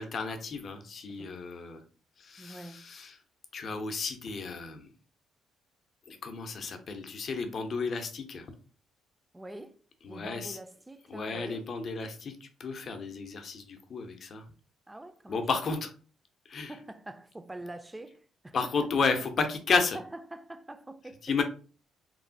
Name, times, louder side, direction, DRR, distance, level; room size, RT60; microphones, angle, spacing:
voice 1, 0.0-1.8 2.2-3.1 3.5-4.9 6.1-8.5 10.0-10.6 11.1-14.5 15.3-15.9 16.5-16.7 18.5-20.0 21.2-21.4, left 4 dB, 55° left, 0.5 m, -32 dB
voice 2, 2.4-2.8 9.3-9.8 10.1-11.7 14.9-15.4 16.7-18.7 19.9-20.0 20.3-21.3, right 1 dB, 15° right, 0.3 m, -45 dB
3.0 x 2.1 x 2.5 m
supercardioid pair, 70°, 0 cm